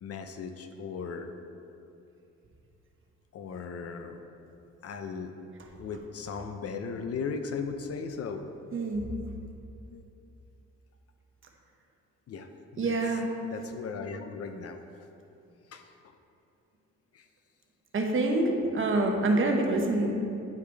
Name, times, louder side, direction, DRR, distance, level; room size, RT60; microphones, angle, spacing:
voice 1, 0.0-1.3 3.3-4.2 4.8-5.3 5.8-8.4 9.9-10.0 12.3-13.0 13.4-14.8 15.7-15.9 17.1-17.2 19.0-19.2 19.7-20.0, left 5 dB, 50° left, 7 dB, 0.6 m, -37 dB
voice 2, 8.7-9.0 12.8-13.2 17.9-20.1, right 2 dB, 45° right, 2 dB, 1.0 m, -26 dB
9.3 x 4.9 x 3.4 m, 2.7 s
cardioid pair, 90°, 30 cm